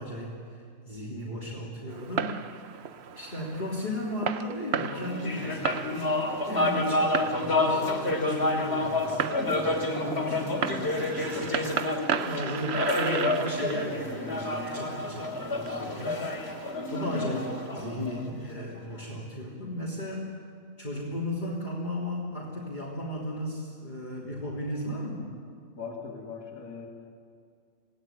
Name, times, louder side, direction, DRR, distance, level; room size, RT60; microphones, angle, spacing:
voice 1, 0.0-2.4 2.7-2.8 3.1-16.2 16.9-20.4 20.8-25.3, left 1 dB, 30° left, -6 dB, 3.4 m, -35 dB
Fireworks, 1.9-16.7, right 7 dB, 55° right, 1.0 m, -36 dB
sound 1, 4.9-18.6, left 2 dB, 50° left, 3.4 m, -29 dB
voice 2, 25.7-26.9, left 5 dB, 80° left, -6 dB, 3.2 m, -39 dB
26.5 x 18.0 x 9.3 m, 2.2 s
omnidirectional pair, 1.4 m